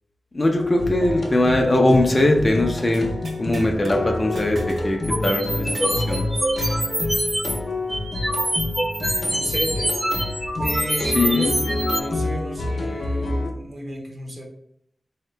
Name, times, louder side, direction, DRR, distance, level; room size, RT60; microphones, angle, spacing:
voice 1, 0.3-3.1 3.4-6.2 11.0-11.5, left 1 dB, 30° left, 2 dB, 0.5 m, -20 dB
sound 1, 0.6-13.5, left 2 dB, 65° left, 0.7 m, -28 dB
sound 2, 2.9-4.0 4.4-4.9 5.2-5.3 5.7-6.9, right 2 dB, 80° right, 0.6 m, -40 dB
sound 3, 5.0-7.5 7.9-12.0, equal, 10° right, 0.7 m, -25 dB
voice 2, 9.3-10.0 10.6-11.7 11.9-14.4, right 1 dB, 40° right, 0 dB, 0.8 m, -33 dB
4.1 x 2.8 x 3.3 m, 0.74 s
wide cardioid pair, 125°, 0 cm